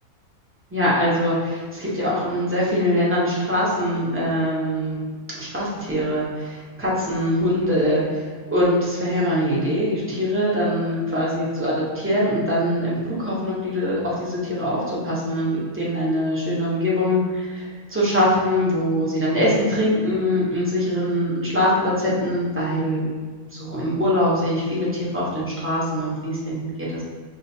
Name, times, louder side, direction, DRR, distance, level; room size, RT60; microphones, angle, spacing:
voice 1, 0.7-5.0 5.4-8.2 8.5-23.0 23.6-27.0, equal, 10° right, -7 dB, 0.7 m, -23 dB
6.3 x 2.5 x 2.7 m, 1.5 s
omnidirectional pair, 1.7 m